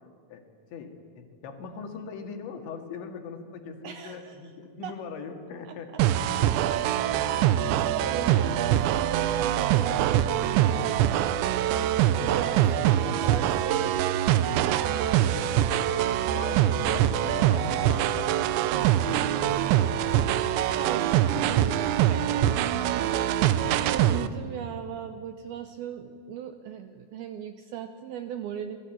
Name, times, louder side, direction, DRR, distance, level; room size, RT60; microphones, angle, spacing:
voice 1, 0.7-6.0 15.3-15.9 16.2-19.3, left 5 dB, 85° left, 4 dB, 4.4 m, -41 dB
voice 2, 3.8-4.4 4.8-4.9 5.7-6.0 7.9-15.0 20.7-28.8, right 9 dB, 75° right, 9 dB, 2.4 m, -38 dB
sound 1, 6.0-24.3, right 11 dB, 90° right, 3.1 m, -24 dB
27.0 x 20.0 x 9.1 m, 2.2 s
omnidirectional pair, 5.1 m